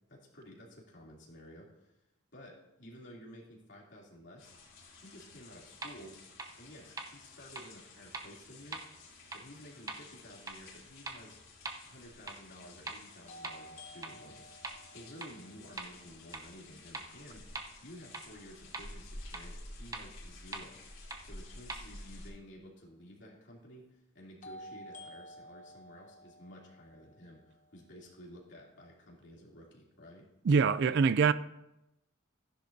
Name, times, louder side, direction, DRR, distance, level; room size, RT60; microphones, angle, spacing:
voice 1, 0.1-1.9 2.3-4.5 5.0-6.2 6.6-8.8 9.3-11.4 11.8-14.5 14.9-30.3, equal, 60° left, 2.9 m, -53 dB
sound 1, 4.4-22.3, left 2 dB, 80° left, 3.3 m, -52 dB
sound 2, 5.8-5.9 6.4-6.5 7.0-7.1 7.5-7.6 8.1-8.2 8.7-8.8 9.3-9.4 9.9-10.0 10.5-10.6 11.1-11.2 11.6-11.7 12.3-12.4 12.9-13.0 13.4-13.5 14.0-14.1 14.6-14.7 15.2-15.3 15.8-15.9 16.3-16.4 16.9-17.0 17.5-17.6 18.1-18.2 18.7-18.8 19.3-19.4 19.9-20.0 20.5-20.6 21.1-21.2 21.7-21.8, right 3 dB, 15° right, 0.7 m, -40 dB
sound 3, 11.3-11.4 13.3-17.2 24.4-28.4, equal, 35° left, 0.8 m, -53 dB
voice 2, 30.4-31.3, right 5 dB, 55° right, 0.3 m, -24 dB
14.0 x 10.5 x 2.7 m
head